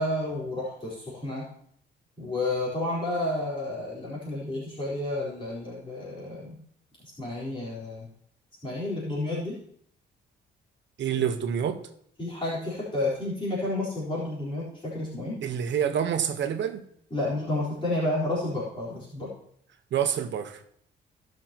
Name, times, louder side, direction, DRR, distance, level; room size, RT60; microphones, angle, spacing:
voice 1, 0.0-1.5 2.2-6.6 7.0-8.1 8.6-9.6 11.1-11.2 12.2-15.4 17.1-19.3, left 1 dB, 25° left, 4.2 m, -31 dB
voice 2, 11.0-11.8 15.4-16.8 19.9-20.6, right 8 dB, 65° right, 1.2 m, -27 dB
17.5 x 6.6 x 3.0 m
cardioid pair, 90°, 20 cm